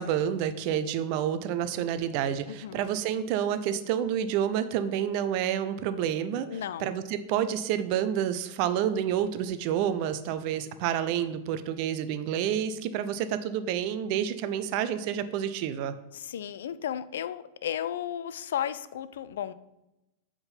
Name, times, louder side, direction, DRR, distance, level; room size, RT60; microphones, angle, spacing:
voice 1, 0.0-15.9, right 9 dB, 45° right, 11 dB, 0.5 m, -29 dB
voice 2, 2.5-2.8 6.5-6.9 16.1-19.5, left 10 dB, 60° left, 15 dB, 0.3 m, -34 dB
7.8 x 3.7 x 5.5 m, 0.91 s
figure-of-eight pair, 90°, 0 cm